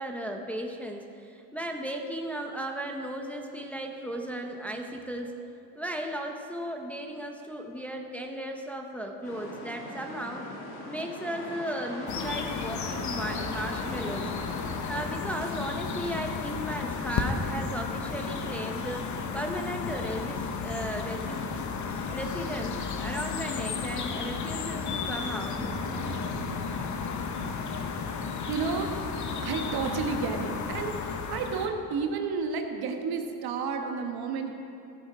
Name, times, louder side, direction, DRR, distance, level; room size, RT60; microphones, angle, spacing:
voice 1, 0.0-5.4 5.8-10.4 10.9-14.3 14.9-21.4 22.1-25.6, right 1 dB, 5° left, 2 dB, 0.7 m, -35 dB
sound 1, 9.2-15.1, left 1 dB, 70° left, 2.6 m, -40 dB
sound 2, 12.1-31.7, left 5 dB, 45° left, 1.0 m, -33 dB
sound 3, 25.6-26.6 28.0-28.1 28.7-28.8, right 3 dB, 15° right, 1.1 m, -39 dB
voice 2, 28.0-34.5, right 5 dB, 65° right, 4 dB, 1.3 m, -32 dB
15.0 x 9.0 x 4.9 m, 2.7 s
cardioid pair, 135°, 40 cm